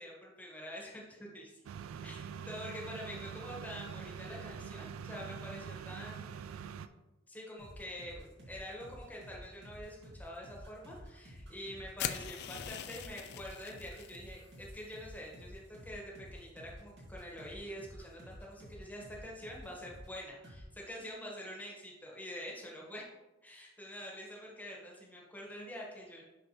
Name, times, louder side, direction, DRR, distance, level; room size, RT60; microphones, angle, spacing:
voice 1, 0.0-1.6 2.0-2.2 2.4-6.9 7.3-23.1 23.4-26.2, equal, 10° left, -3 dB, 1.4 m, -46 dB
sound 1, 1.6-6.9, right 7 dB, 90° right, 0.3 m, -44 dB
sound 2, 7.6-20.2 20.4-20.6, equal, 60° right, 2.1 m, -51 dB
sound 3, 12.0-14.2, left 10 dB, 55° left, 0.3 m, -41 dB
5.9 x 5.8 x 3.1 m, 1.0 s
head